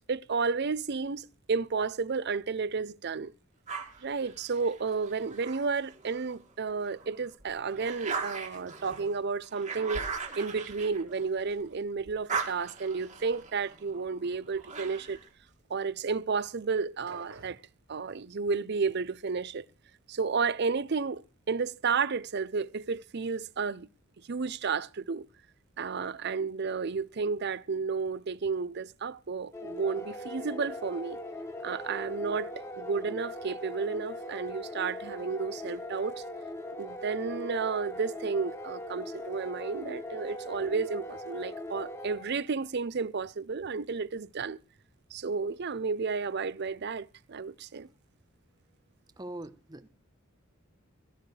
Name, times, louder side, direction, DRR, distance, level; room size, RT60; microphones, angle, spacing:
voice 1, 0.1-3.3 4.0-10.1 10.3-15.2 15.7-17.6 17.9-19.7 20.1-23.9 24.3-25.3 25.8-31.2 31.6-36.2 36.8-44.6 45.1-47.9, right 5 dB, 50° right, 0.6 m, -32 dB
sound 1, 3.7-6.4 6.9-11.7 12.0-15.3, right 5 dB, 35° right, 2.2 m, -39 dB
sound 2, 17.1-17.7, right 3 dB, 70° right, 3.7 m, -48 dB
sound 3, 29.5-42.5, left 1 dB, 15° left, 1.2 m, -40 dB
voice 2, 49.2-49.9, right 1 dB, 20° right, 1.0 m, -42 dB
16.0 x 14.0 x 3.3 m
head